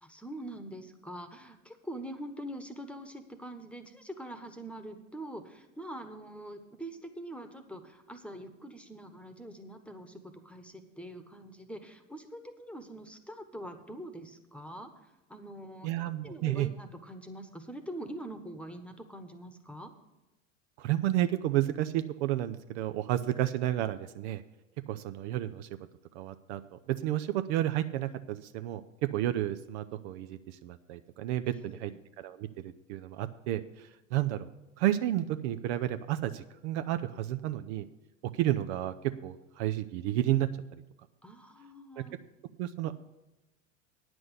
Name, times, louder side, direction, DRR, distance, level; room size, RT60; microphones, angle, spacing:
voice 1, 0.0-14.9 15.3-19.9 31.5-32.0 41.2-42.2, right 1 dB, 5° left, 8 dB, 1.1 m, -44 dB
voice 2, 15.8-16.7 20.8-24.4 24.9-25.7 26.1-31.9 32.2-34.5 34.8-37.9 38.3-38.9 39.2-40.5 42.0-42.1 42.6-42.9, right 13 dB, 60° right, 10 dB, 0.6 m, -31 dB
9.6 x 6.2 x 8.1 m, 1.0 s
hypercardioid pair, 80°, 39 cm